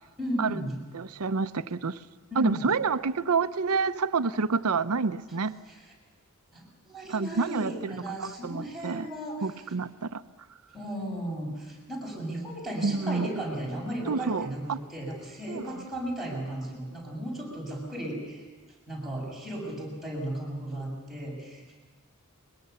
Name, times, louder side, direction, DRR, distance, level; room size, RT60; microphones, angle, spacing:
voice 1, 0.2-0.8 2.3-2.7 5.7-5.8 6.5-9.5 10.7-18.5 18.9-21.8, right 1 dB, ahead, 7.2 m, -35 dB
voice 2, 0.9-2.0 2.4-5.6 7.1-9.1 9.4-10.2 12.8-13.3 14.1-14.8 15.5-15.8, right 4 dB, 75° right, 0.7 m, -28 dB
23.0 x 21.5 x 6.9 m
head